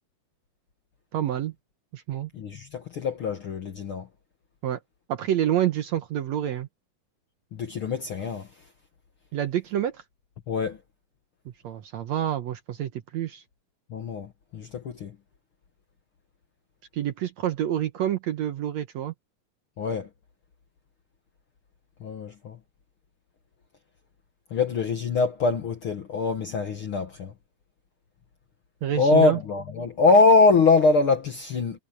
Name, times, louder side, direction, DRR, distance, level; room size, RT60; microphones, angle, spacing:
voice 1, 1.1-1.5 1.9-2.3 4.6-4.8 5.1-6.7 9.3-10.0 11.5-13.4 16.9-19.1 28.8-29.4, right 11 dB, 65° right, 1.8 m, -28 dB
voice 2, 2.3-4.1 7.5-8.5 10.5-10.8 13.9-15.1 19.8-20.1 22.0-22.6 24.5-27.3 28.9-31.8, left 3 dB, 55° left, 1.5 m, -23 dB
omnidirectional pair, 4.0 m